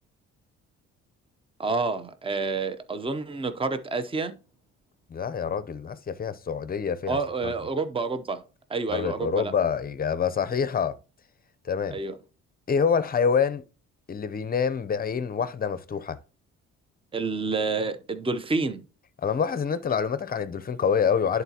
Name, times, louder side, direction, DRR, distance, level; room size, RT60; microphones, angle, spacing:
voice 1, 1.6-4.3 7.1-8.4 8.7-9.5 11.9-12.2 17.1-18.8, right 3 dB, 20° right, 0.7 m, -28 dB
voice 2, 5.1-7.5 8.9-11.0 11.6-12.0 12.7-13.6 14.1-16.2 19.2-21.4, left 6 dB, 30° left, 0.6 m, -26 dB
10.5 x 4.0 x 2.8 m
cardioid pair, 90°, 30 cm